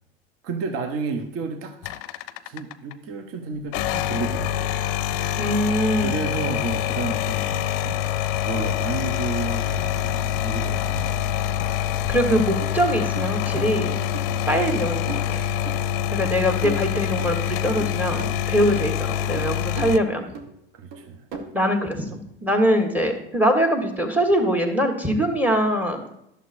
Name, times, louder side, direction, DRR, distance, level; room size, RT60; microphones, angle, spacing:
voice 1, 0.4-1.9 2.4-4.7 6.0-8.0 8.4-11.4 14.2-14.5 20.7-21.3, right 5 dB, 50° right, 6 dB, 1.0 m, -32 dB
sound 1, 1.8-2.9 3.6-20.0, left 10 dB, 55° left, 0.5 m, -25 dB
voice 2, 5.4-6.2 12.1-14.0 14.5-15.4 16.1-20.2 21.3-26.0, equal, 5° right, 4 dB, 1.5 m, -23 dB
sound 2, 12.6-12.7 13.2-13.7 14.1-14.2 14.7-15.2 15.7-15.8 16.2-16.4 16.6-17.4 17.8-18.9 19.4-20.0 20.3-20.5 20.9-21.6, right 5 dB, 75° right, 1.2 m, -36 dB
11.0 x 6.8 x 2.6 m, 0.79 s
hypercardioid pair, 85°, 30 cm